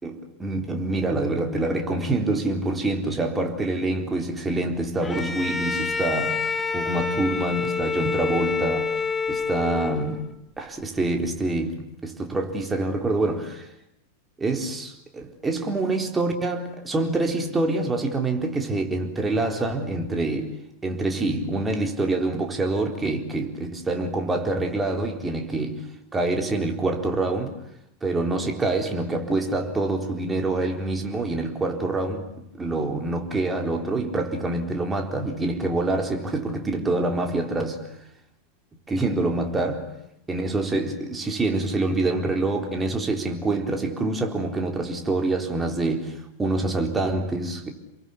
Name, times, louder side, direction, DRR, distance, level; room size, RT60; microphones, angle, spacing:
voice 1, 0.0-9.0 9.3-10.3 10.6-13.7 14.4-20.6 20.8-25.8 26.1-27.6 28.0-37.9 38.9-39.9 40.3-47.7, right 2 dB, 15° right, 4.1 m, -26 dB
Bowed string instrument, 5.0-10.3, left 5 dB, 15° left, 2.1 m, -27 dB
29.0 x 23.0 x 8.6 m
figure-of-eight pair, 90°, 0 cm